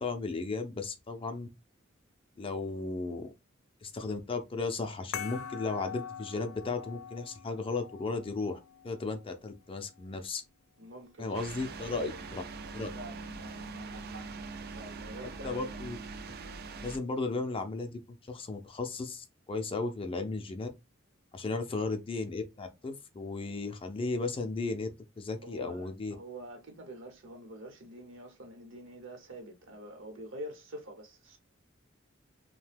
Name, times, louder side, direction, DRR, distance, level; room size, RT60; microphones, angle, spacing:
voice 1, 0.0-1.5 2.4-3.3 3.8-10.4 11.2-12.4 12.7-12.9 15.4-16.0 16.8-20.7 21.3-24.9 25.2-26.1, left 3 dB, 25° left, 0.4 m, -35 dB
sound 1, 5.1-10.2, left 8 dB, 85° left, 0.3 m, -44 dB
voice 2, 10.8-11.4 11.8-12.2 12.9-14.3 14.8-15.8 21.5-21.8 25.4-31.4, right 1 dB, 70° right, 0.9 m, -46 dB
sound 2, 11.3-17.0, right 4 dB, 50° right, 0.4 m, -42 dB
2.7 x 2.2 x 3.3 m
head